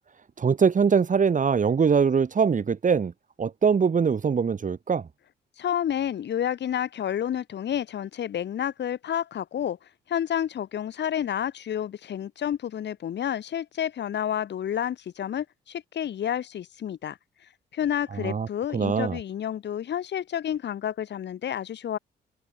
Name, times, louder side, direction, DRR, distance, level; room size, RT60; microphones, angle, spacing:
voice 1, 0.4-3.1 3.4-5.0 18.2-18.5 18.7-19.2, right 6 dB, 45° right, 2.5 m, -22 dB
voice 2, 5.6-9.8 10.1-17.2 17.7-22.0, left 10 dB, 70° left, 4.4 m, -30 dB
cardioid pair, 75°, 19 cm